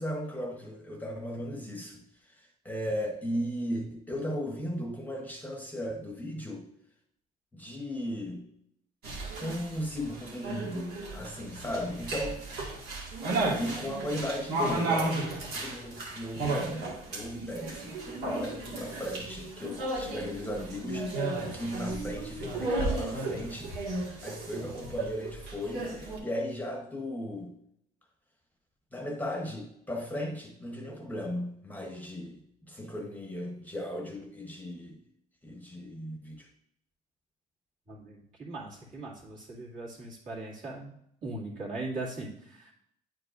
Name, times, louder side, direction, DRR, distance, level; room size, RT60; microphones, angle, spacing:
voice 1, 0.0-6.7 7.5-8.5 9.4-12.4 13.6-27.5 28.9-35.0 35.4-36.5, equal, 10° left, 1 dB, 0.9 m, -36 dB
sound 1, 9.0-26.2, right 2 dB, 70° right, 1.7 m, -34 dB
voice 2, 37.9-42.7, right 2 dB, 50° right, -5 dB, 2.2 m, -40 dB
9.5 x 4.6 x 2.5 m, 0.74 s
cardioid pair, 110°, 17 cm